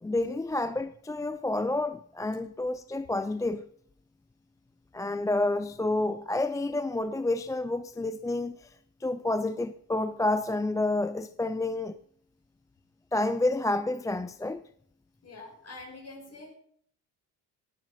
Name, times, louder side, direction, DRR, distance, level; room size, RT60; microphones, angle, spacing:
voice 1, 0.0-3.7 4.9-8.8 9.0-12.0 13.1-14.6, left 2 dB, 10° left, 0.4 m, -29 dB
voice 2, 15.2-16.5, left 2 dB, 35° left, 5.9 m, -45 dB
19.0 x 7.9 x 5.7 m
supercardioid pair, 85°, 42 cm